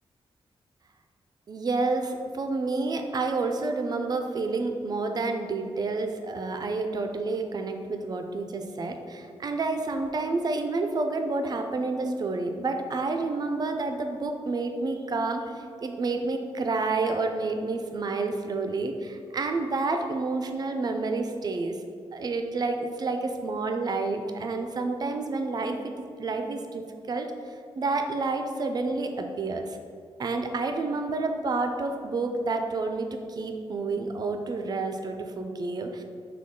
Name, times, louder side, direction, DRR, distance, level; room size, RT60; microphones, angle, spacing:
voice 1, 1.5-15.4 15.8-21.7 22.1-27.3 27.7-29.8 30.2-36.0, right 3 dB, 40° right, 5 dB, 0.4 m, -29 dB
6.0 x 2.3 x 3.6 m, 2.4 s
wide cardioid pair, 140°, 10 cm